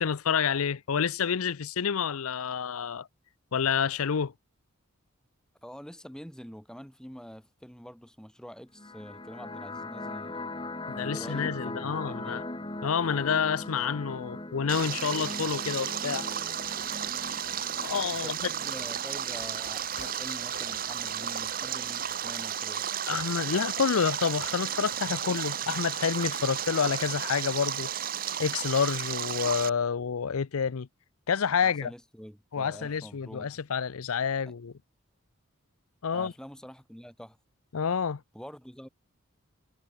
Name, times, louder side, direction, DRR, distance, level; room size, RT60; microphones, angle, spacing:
voice 1, 0.0-3.1 3.5-4.3 10.9-12.4 12.8-16.3 17.8-18.5 23.1-27.9 28.4-30.9 31.3-31.9 32.5-34.7 36.0-36.3 37.7-38.2, left 6 dB, 85° left, 0.6 m, -28 dB
voice 2, 5.6-10.6 11.1-12.5 18.2-22.9 31.6-33.5 34.5-34.6 36.1-37.4 38.3-38.9, equal, 5° left, 1.9 m, -45 dB
sound 1, 8.7-19.7, left 2 dB, 20° left, 1.4 m, -40 dB
Stream, 14.7-29.7, right 9 dB, 40° right, 1.1 m, -33 dB
sound 2, 16.4-22.5, left 4 dB, 50° left, 4.4 m, -53 dB
head